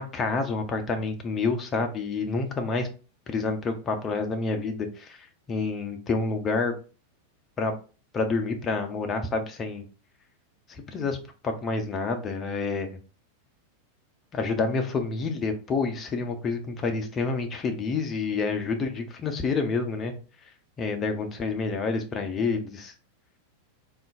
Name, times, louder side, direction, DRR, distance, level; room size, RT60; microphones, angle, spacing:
voice 1, 0.0-2.9 3.3-6.7 7.6-7.7 8.1-9.8 10.7-11.2 11.4-13.0 14.3-20.1 20.8-22.9, left 4 dB, 25° left, 5 dB, 0.6 m, -28 dB
3.7 x 2.5 x 2.3 m, 0.35 s
figure-of-eight pair, 90°, 0 cm